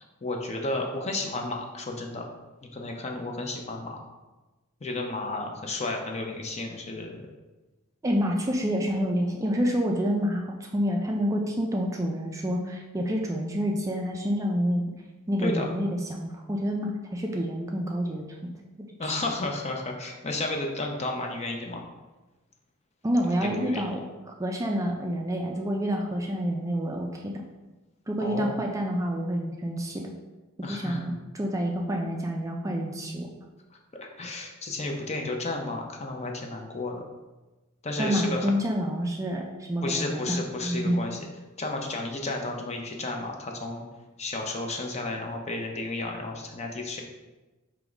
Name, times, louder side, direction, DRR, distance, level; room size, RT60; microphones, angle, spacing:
voice 1, 0.2-2.3 2.7-4.0 4.8-7.2 15.4-15.7 19.0-21.8 23.4-23.8 28.2-28.6 30.6-31.1 34.0-37.0 37.8-38.5 39.8-41.2 41.6-43.8 44.2-47.0, left 2 dB, 30° left, 2 dB, 0.6 m, -32 dB
voice 2, 8.0-14.9 15.3-18.5 18.8-19.1 23.0-27.4 28.1-30.1 30.7-33.3 38.0-41.0, equal, 15° right, 1 dB, 0.4 m, -28 dB
3.6 x 3.0 x 4.9 m, 1.1 s
head